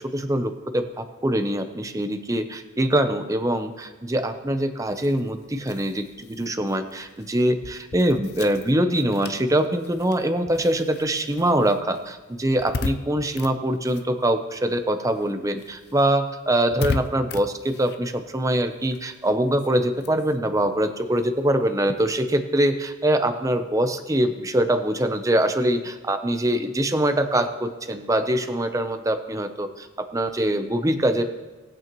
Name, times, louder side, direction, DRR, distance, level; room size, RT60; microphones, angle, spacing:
voice 1, 0.1-31.2, right 1 dB, 15° right, 7 dB, 0.7 m, -23 dB
sound 1, 4.9-14.8 15.1-22.0, left 4 dB, 55° left, 0.5 m, -38 dB
19.0 x 8.7 x 3.0 m, 1.2 s
head